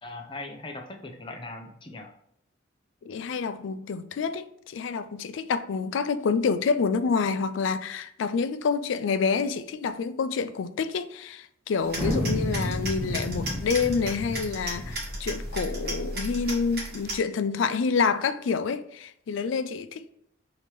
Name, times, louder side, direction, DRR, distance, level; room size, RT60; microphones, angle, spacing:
voice 1, 0.0-2.1, left 2 dB, 25° left, 0.5 m, -40 dB
voice 2, 3.1-20.1, left 5 dB, 80° left, 0.3 m, -28 dB
sound 1, 11.8-17.2, right 1 dB, 50° right, 1.2 m, -35 dB
sound 2, 11.9-15.6, left 1 dB, 15° right, 1.5 m, -31 dB
5.1 x 2.8 x 3.1 m
head